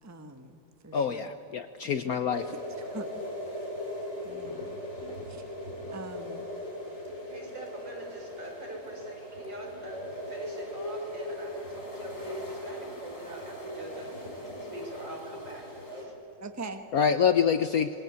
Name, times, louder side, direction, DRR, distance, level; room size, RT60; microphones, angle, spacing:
voice 1, 0.0-1.3 1.8-2.2 2.8-3.1 4.2-4.8 5.3-5.4 5.9-6.5 16.4-16.9, right 3 dB, 10° right, 6 dB, 1.2 m, -43 dB
voice 2, 0.9-2.5 16.9-17.9, left 7 dB, 60° left, 10 dB, 1.1 m, -26 dB
sound 1, 2.3-16.1, left 1 dB, 45° left, 4.4 m, -39 dB
voice 3, 7.3-16.1 17.6-17.7, right 1 dB, 75° right, 0 dB, 5.8 m, -43 dB
26.5 x 21.5 x 8.1 m, 2.9 s
omnidirectional pair, 2.0 m